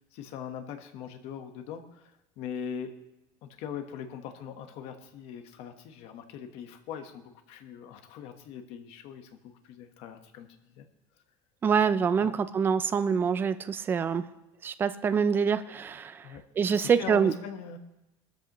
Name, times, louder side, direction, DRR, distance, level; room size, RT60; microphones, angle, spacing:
voice 1, 0.1-2.1 2.4-2.9 3.4-10.5 10.7-10.9 12.2-12.4 16.2-16.4 16.7-17.8, left 7 dB, 45° left, 6 dB, 1.3 m, -41 dB
voice 2, 11.6-14.2 14.6-16.2 16.6-17.3, right 6 dB, 15° right, 12 dB, 0.4 m, -25 dB
19.5 x 13.0 x 3.0 m, 0.97 s
cardioid pair, 175°, 13 cm